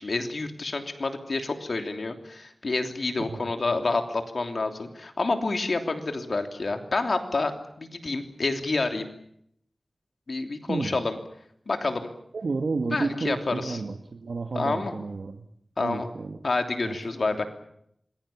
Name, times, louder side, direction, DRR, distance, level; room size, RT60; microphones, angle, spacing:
voice 1, 0.0-7.5 7.8-9.1 10.3-11.2 11.7-12.1 12.9-13.8 14.5-14.9 15.8-16.1 16.4-17.5, left 3 dB, 70° left, 6 dB, 3.1 m, -28 dB
voice 2, 10.7-11.0 12.3-15.4 15.8-16.4 16.9-17.0, right 3 dB, 85° right, 5 dB, 1.7 m, -31 dB
27.0 x 21.5 x 7.2 m, 0.71 s
wide cardioid pair, 55°, 0 cm